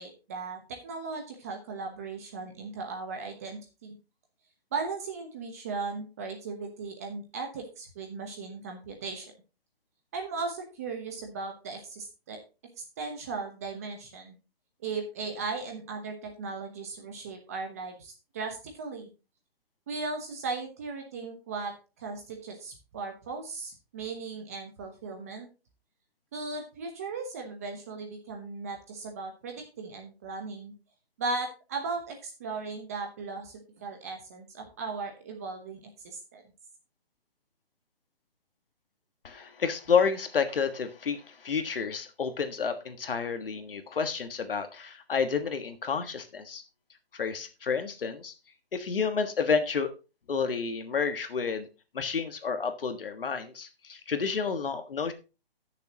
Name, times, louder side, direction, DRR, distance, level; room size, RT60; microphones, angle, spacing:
voice 1, 0.0-4.0 4.7-9.3 10.1-12.4 13.0-14.3 14.8-19.1 19.9-25.5 26.3-30.7 31.2-36.4, right 4 dB, 15° right, 3 dB, 0.9 m, -37 dB
voice 2, 39.2-46.6 47.1-48.3 48.7-49.9 50.3-51.7 51.9-55.1, left 6 dB, 65° left, 8 dB, 1.6 m, -30 dB
15.0 x 6.8 x 2.9 m, 0.31 s
hypercardioid pair, 170°, 30 cm